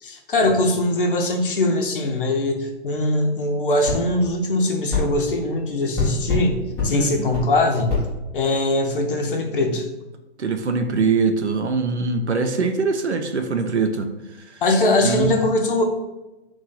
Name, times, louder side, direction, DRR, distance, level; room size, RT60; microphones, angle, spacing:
voice 1, 0.0-8.0 8.3-9.9 14.6-15.8, left 2 dB, 50° left, 3 dB, 0.7 m, -21 dB
sound 1, 3.8-4.0 4.9-5.1 5.9-6.5 6.8-6.9 7.3-7.5 7.9-8.1, left 3 dB, 5° left, 0.5 m, -23 dB
voice 2, 6.9-7.3 10.4-14.1 14.5-14.6 15.0-15.4, right 4 dB, 80° right, 7 dB, 0.6 m, -23 dB
3.1 x 2.7 x 3.8 m, 1.0 s
figure-of-eight pair, 125°, 34 cm